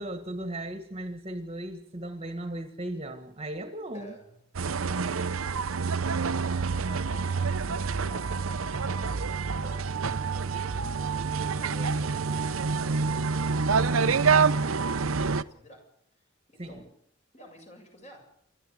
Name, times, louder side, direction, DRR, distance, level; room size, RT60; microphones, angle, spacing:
voice 1, 0.0-4.2 16.6-16.8, right 1 dB, 30° right, 7 dB, 1.7 m, -36 dB
voice 2, 3.9-4.4 8.0-16.9 17.3-18.3, right 1 dB, 35° left, 3 dB, 7.0 m, -52 dB
sound 1, 4.5-15.4, right 5 dB, 85° right, 0.8 m, -27 dB
28.0 x 12.0 x 8.1 m, 0.68 s
head